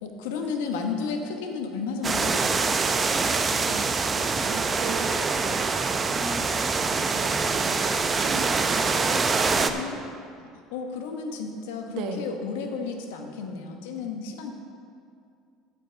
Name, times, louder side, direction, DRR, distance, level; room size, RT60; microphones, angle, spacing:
voice 1, 0.0-2.4 3.1-3.6 9.5-14.5, left 5 dB, 85° left, 4 dB, 1.2 m, -33 dB
sound 1, 2.0-9.7, right 4 dB, 30° right, 0.6 m, -25 dB
voice 2, 4.4-6.5 7.0-9.2 12.0-12.3, right 4 dB, 70° right, 5 dB, 1.1 m, -37 dB
9.0 x 5.4 x 7.8 m, 2.3 s
supercardioid pair, 95°, 0 cm